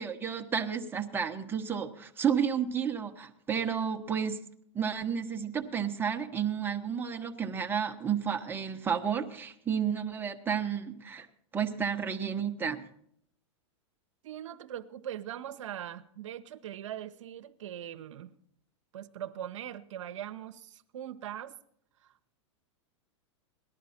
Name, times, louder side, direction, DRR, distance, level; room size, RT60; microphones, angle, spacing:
voice 1, 0.0-4.4 4.7-11.3 11.5-12.8, right 7 dB, 15° right, 1.1 m, -31 dB
voice 2, 14.2-18.3 18.9-21.6 22.0-22.3, right 11 dB, 80° right, 0.8 m, -41 dB
18.0 x 12.0 x 4.3 m
hypercardioid pair, 125°, 16 cm